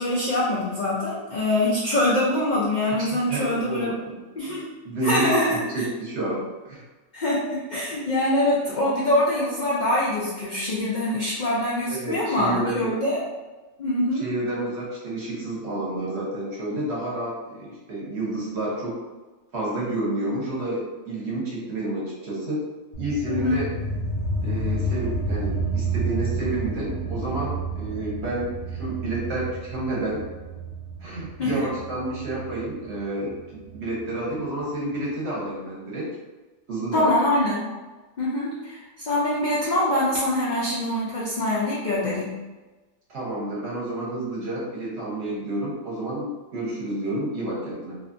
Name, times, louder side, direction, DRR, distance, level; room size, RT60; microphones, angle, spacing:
voice 1, 0.0-3.9 4.4-4.6 5.0-5.8 7.1-13.2 13.8-14.2 23.3-23.6 31.4-31.5 36.9-37.8 38.2-42.3, left 1 dB, 85° left, -7 dB, 0.4 m, -24 dB
voice 2, 3.0-3.9 4.8-5.3 5.7-6.8 11.9-12.9 14.1-19.0 19.5-22.6 23.0-23.7 24.4-30.2 31.0-36.1 36.7-37.1 43.1-48.0, right 2 dB, 55° right, -5 dB, 1.0 m, -30 dB
sound 1, 22.9-34.0, right 2 dB, 65° left, 0.9 m, -30 dB
2.7 x 2.4 x 2.5 m, 1.2 s
omnidirectional pair, 1.5 m